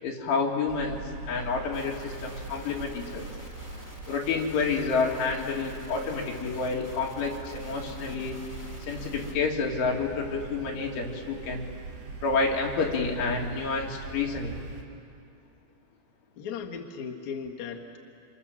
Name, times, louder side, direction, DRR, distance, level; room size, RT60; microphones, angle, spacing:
voice 1, 0.0-3.4 4.1-8.4 8.8-11.7 12.2-14.6, left 4 dB, 75° left, -1 dB, 4.8 m, -29 dB
sound 1, 0.7-14.8, right 3 dB, 55° right, 5.2 m, -42 dB
sound 2, 1.7-9.3, equal, 5° left, 1.6 m, -49 dB
voice 2, 16.4-18.0, left 6 dB, 50° left, -1 dB, 2.4 m, -37 dB
29.0 x 26.5 x 7.4 m, 2.5 s
omnidirectional pair, 5.6 m